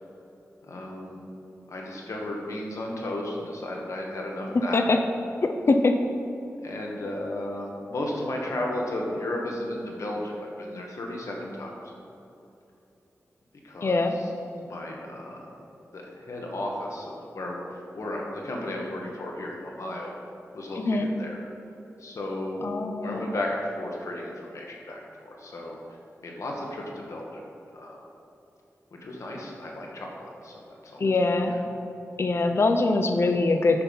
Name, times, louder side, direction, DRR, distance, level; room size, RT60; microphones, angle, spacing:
voice 1, 0.6-1.3 1.7-4.8 6.6-11.7 13.6-14.3 14.6-15.4 15.9-20.2 20.5-21.4 22.0-25.8 26.2-27.4 27.7-28.0 28.9-30.5 30.8-31.1 31.5-31.6, left 1 dB, 75° left, -1 dB, 1.7 m, -34 dB
voice 2, 5.4-6.0 13.8-14.2 20.8-21.1 22.6-23.3 31.0-31.5 32.2-33.8, left 3 dB, 50° left, 5 dB, 0.7 m, -23 dB
9.7 x 6.1 x 5.5 m, 2.9 s
wide cardioid pair, 80°, 5 cm